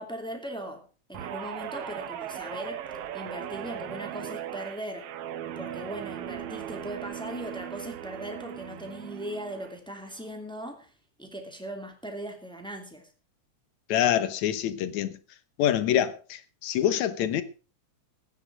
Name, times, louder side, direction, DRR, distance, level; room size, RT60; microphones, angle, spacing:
voice 1, 0.0-2.8 3.1-5.1 5.6-10.9 11.2-13.1, right 1 dB, ahead, 2.2 m, -39 dB
Guitar, 1.1-9.7 10.1-10.4, right 10 dB, 65° right, 1.6 m, -38 dB
voice 2, 13.9-15.1 15.6-17.4, left 11 dB, 70° left, 2.4 m, -25 dB
16.5 x 9.6 x 4.9 m
omnidirectional pair, 3.5 m